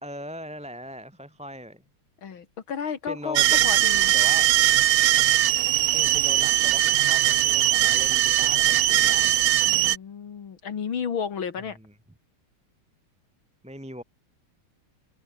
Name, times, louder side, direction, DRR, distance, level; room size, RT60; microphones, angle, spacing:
voice 1, 0.0-1.8 3.1-3.8 4.1-4.5 5.9-9.5 11.8-11.9 13.6-14.0, equal, 5° right, 1.6 m, -39 dB
voice 2, 2.2-4.1 9.6-11.8, left 7 dB, 70° left, 2.7 m, -32 dB
sound 1, 3.3-10.0, right 14 dB, 85° right, 0.8 m, -20 dB
omnidirectional pair, 2.3 m